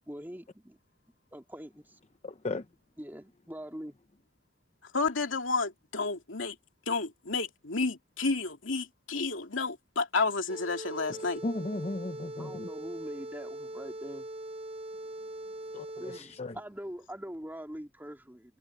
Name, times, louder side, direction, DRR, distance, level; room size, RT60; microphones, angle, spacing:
voice 1, 0.1-0.8 1.3-2.0 3.0-4.0 12.4-14.3 16.0-18.6, equal, 10° right, 2.5 m, -43 dB
voice 2, 2.2-2.6 11.4-12.7 15.7-15.8 16.2-16.5, left 2 dB, 30° left, 0.7 m, -35 dB
voice 3, 4.9-6.6 6.9-11.4, left 4 dB, 70° left, 2.7 m, -31 dB
sound 1, 10.5-16.4, right 1 dB, 30° right, 5.4 m, -41 dB
head